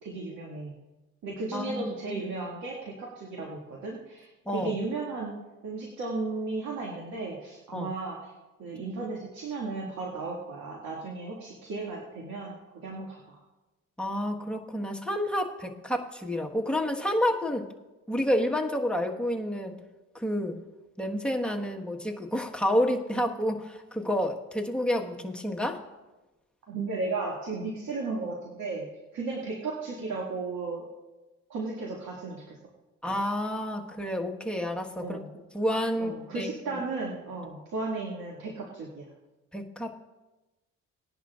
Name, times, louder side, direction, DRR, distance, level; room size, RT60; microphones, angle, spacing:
voice 1, 0.0-0.7 1.2-5.4 5.6-8.3 8.6-13.4 26.7-28.9 29.1-30.8 31.5-32.6 35.0-35.3 36.0-39.1, right 3 dB, 70° right, -3 dB, 2.3 m, -35 dB
voice 2, 1.5-2.2 4.4-4.7 7.7-7.9 14.0-17.7 18.1-19.8 20.1-20.6 21.0-25.9 33.0-35.2 35.5-36.8 39.5-40.0, equal, 5° left, 0 dB, 1.5 m, -29 dB
19.5 x 11.0 x 2.5 m, 1.1 s
cardioid pair, 90°, 30 cm